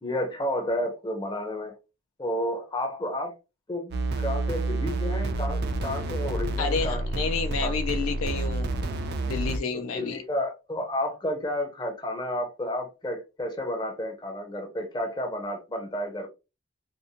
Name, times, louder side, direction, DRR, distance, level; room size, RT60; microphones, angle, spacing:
voice 1, 0.0-1.7 2.2-3.3 3.7-7.1 7.6-7.7 8.4-8.5 9.7-16.3, left 1 dB, 20° left, 0.6 m, -31 dB
sound 1, 3.9-9.6, right 2 dB, 50° right, 0.4 m, -29 dB
voice 2, 6.6-8.7 9.2-10.2, left 4 dB, 70° left, 0.4 m, -30 dB
2.6 x 2.0 x 2.8 m
head